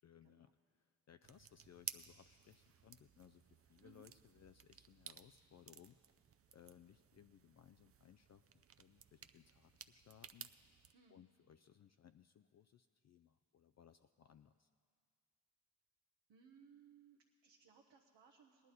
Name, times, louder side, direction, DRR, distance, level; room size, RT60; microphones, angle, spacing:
voice 1, 0.0-6.0 6.5-10.5 11.1-14.7, left 9 dB, 40° left, 9 dB, 0.4 m, -64 dB
sound 1, 1.2-10.9, right 8 dB, 35° right, 0.5 m, -56 dB
voice 2, 10.9-11.2 16.3-18.7, right 6 dB, 80° right, 0 dB, 1.0 m, -65 dB
18.5 x 11.0 x 4.1 m, 2.1 s
supercardioid pair, 50°, 42 cm